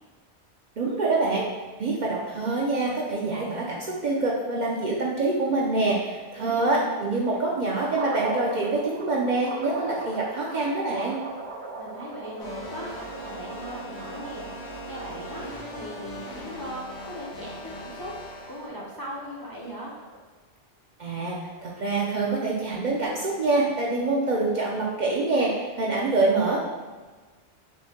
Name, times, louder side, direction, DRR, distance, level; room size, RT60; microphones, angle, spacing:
voice 1, 0.8-1.5 1.8-11.2 21.0-21.4 21.6-26.6, right 3 dB, 55° right, -3 dB, 0.6 m, -25 dB
voice 2, 6.3-6.9 7.3-7.4 11.8-14.5 14.8-15.4 15.7-18.1 18.5-19.9, equal, 25° left, -5 dB, 0.5 m, -39 dB
sound 1, 7.9-20.2, right 2 dB, 85° right, 1.0 m, -39 dB
sound 2, 12.4-18.7, equal, 85° left, 1.0 m, -40 dB
6.2 x 2.1 x 2.8 m, 1.3 s
omnidirectional pair, 1.1 m